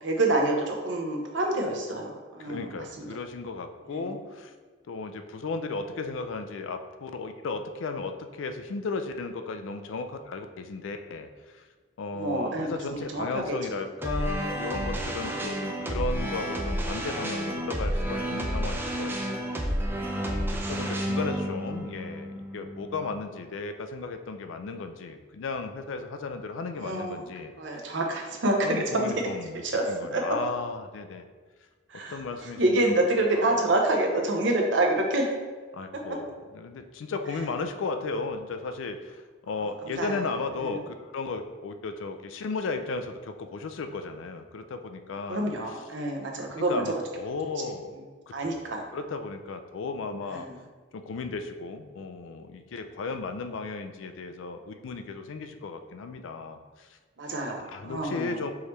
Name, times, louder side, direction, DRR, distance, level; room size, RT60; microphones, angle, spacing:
voice 1, 0.0-3.1 3.9-4.2 12.1-13.6 15.2-15.4 20.2-20.8 26.8-27.3 27.6-29.1 29.7-29.8 30.1-30.2 31.9-35.3 35.9-36.2 40.0-40.2 40.6-40.8 45.3-46.9 48.3-48.9 50.3-50.5 57.2-58.4, right 2 dB, 65° right, 1 dB, 0.7 m, -28 dB
voice 2, 2.4-4.5 4.9-11.6 12.0-19.6 20.1-27.8 28.6-31.2 32.1-33.0 33.3-33.7 35.7-45.5 46.4-47.9 48.4-48.5 48.9-50.5 50.9-57.0 57.6-58.5, left 4 dB, 80° left, 7 dB, 0.4 m, -35 dB
sound 1, 14.0-23.2, equal, 10° right, 0.4 m, -31 dB
4.6 x 3.3 x 3.0 m, 1.4 s
head